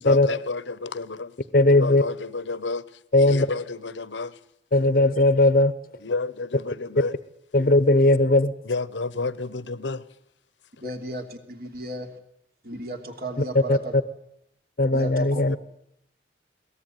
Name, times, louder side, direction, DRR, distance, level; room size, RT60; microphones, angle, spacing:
voice 1, 0.0-1.4 1.7-4.4 6.0-7.1 8.6-10.1 15.5-15.6, left 3 dB, 90° left, 18 dB, 1.0 m, -31 dB
voice 2, 1.5-2.0 3.1-3.5 4.7-5.7 7.5-8.5 13.7-13.8 14.8-15.6, left 2 dB, 50° left, 15 dB, 0.8 m, -18 dB
voice 3, 10.8-12.2 12.6-13.9 14.9-15.4, right 1 dB, 55° right, 5 dB, 3.1 m, -35 dB
22.0 x 18.0 x 9.2 m, 0.78 s
head